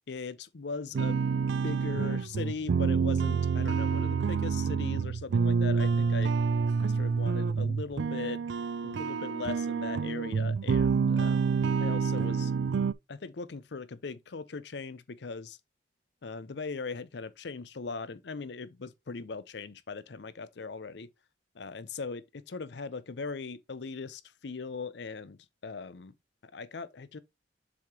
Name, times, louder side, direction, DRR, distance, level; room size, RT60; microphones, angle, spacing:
voice 1, 0.1-1.2 1.6-6.3 6.8-8.4 8.8-12.5 13.1-15.6 16.2-21.1 21.5-26.1 26.4-27.2, left 4 dB, 65° left, 0.6 m, -39 dB
sound 1, 0.9-12.9, right 5 dB, 75° right, 0.3 m, -28 dB
7.1 x 4.9 x 2.8 m
head